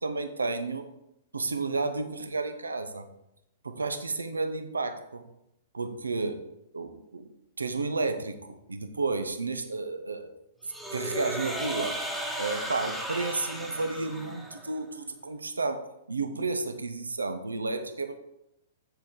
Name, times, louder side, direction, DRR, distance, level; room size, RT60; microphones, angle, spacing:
voice 1, 0.0-0.9 1.3-3.1 3.6-5.2 5.7-6.4 6.7-7.3 7.6-10.3 10.9-12.0 12.4-18.1, right 3 dB, 75° right, 8 dB, 0.9 m, -32 dB
sound 1, 10.7-14.8, equal, ahead, 1.2 m, -35 dB
7.8 x 6.8 x 3.7 m, 0.84 s
figure-of-eight pair, 110°, 0 cm